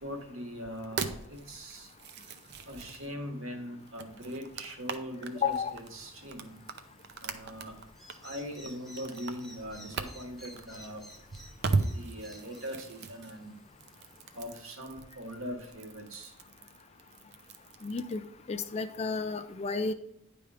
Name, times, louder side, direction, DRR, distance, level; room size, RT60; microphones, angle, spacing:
voice 1, 0.0-1.9 2.7-6.5 7.2-7.8 8.2-11.0 11.7-13.5 14.3-16.3, equal, 65° right, 3 dB, 1.7 m, -41 dB
sound 1, 0.7-3.1 3.8-18.3, right 4 dB, 50° right, 0.6 m, -39 dB
sound 2, 5.3-14.6, equal, ahead, 0.9 m, -55 dB
voice 2, 5.4-5.7 17.8-18.2 18.5-19.9, left 5 dB, 30° left, 11 dB, 0.3 m, -32 dB
10.0 x 3.5 x 4.8 m, 0.74 s
head